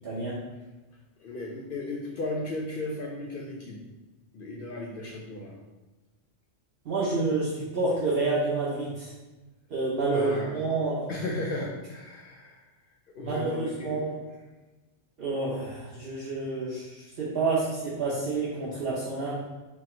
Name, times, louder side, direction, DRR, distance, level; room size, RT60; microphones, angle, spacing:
voice 1, 0.0-0.4 6.8-9.1 9.7-11.1 13.2-14.2 15.2-19.4, right 3 dB, 60° right, -6 dB, 0.9 m, -29 dB
voice 2, 1.2-3.8 4.3-5.6 10.1-10.6 11.1-12.6 13.2-14.1, left 2 dB, 60° left, -1 dB, 0.6 m, -35 dB
4.3 x 2.2 x 4.2 m, 1.1 s
omnidirectional pair, 1.2 m